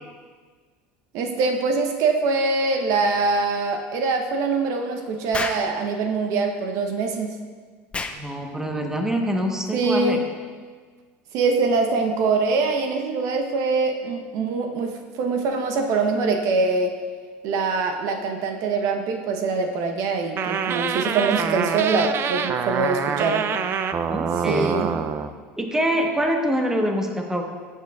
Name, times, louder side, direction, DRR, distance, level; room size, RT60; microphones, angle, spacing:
voice 1, 1.1-7.4 9.7-10.3 11.3-16.9 17.4-23.5 24.4-24.9, right 4 dB, 60° right, 4 dB, 0.8 m, -23 dB
Explosion, 5.3-5.7 7.9-8.2, left 3 dB, 20° left, 0.6 m, -28 dB
voice 2, 8.1-10.2 24.1-24.8 25.6-27.4, equal, 10° right, 2 dB, 1.0 m, -25 dB
sound 1, 20.4-25.3, right 7 dB, 40° right, 0.4 m, -26 dB
12.5 x 7.3 x 2.3 m, 1.5 s
supercardioid pair, 100°, 6 cm